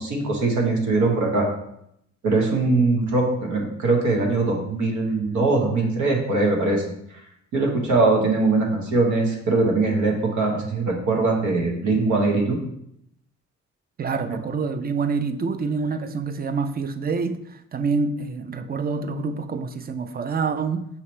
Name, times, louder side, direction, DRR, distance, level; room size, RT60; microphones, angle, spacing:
voice 1, 0.0-1.5 2.2-6.8 7.1-7.3 7.5-12.6, right 3 dB, 85° right, 0 dB, 1.1 m, -21 dB
voice 2, 14.0-20.9, right 4 dB, 35° right, 9 dB, 0.4 m, -27 dB
5.7 x 2.8 x 3.1 m, 0.76 s
cardioid pair, 85°, 29 cm